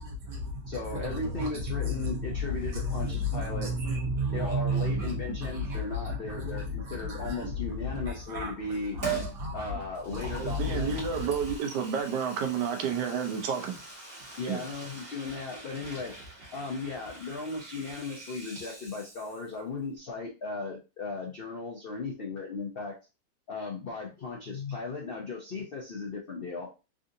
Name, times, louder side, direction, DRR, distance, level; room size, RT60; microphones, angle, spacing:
voice 1, 0.0-11.5, left 1 dB, 60° right, 1.5 m, -33 dB
voice 2, 0.7-3.7 4.3-9.0 9.5-10.9 14.4-16.1 16.5-23.0 23.5-26.7, left 3 dB, 70° left, 0.5 m, -36 dB
Liquid, 9.0-9.4 9.9-19.6 19.9-20.0, right 4 dB, 35° right, 1.4 m, -42 dB
voice 3, 10.4-13.7 14.4-14.6, right 7 dB, 85° right, 1.3 m, -30 dB
3.7 x 2.5 x 2.5 m
omnidirectional pair, 1.8 m